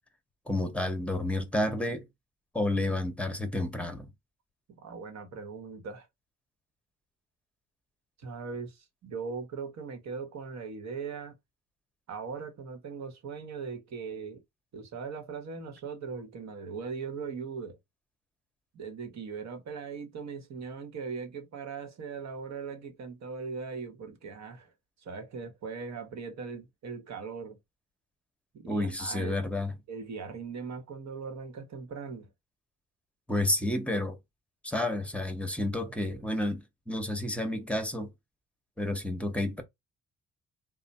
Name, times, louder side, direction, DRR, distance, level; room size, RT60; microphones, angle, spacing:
voice 1, 0.5-2.0 2.5-4.1 28.7-29.7 33.3-34.2 34.6-38.1 38.8-39.6, left 1 dB, 5° left, 0.9 m, -30 dB
voice 2, 4.8-6.1 8.2-11.3 12.1-14.4 14.7-17.8 18.7-24.7 25.0-27.6 28.5-29.4 29.9-32.3, right 5 dB, 60° right, 1.2 m, -39 dB
3.2 x 2.2 x 4.1 m
cardioid pair, 90°, 30 cm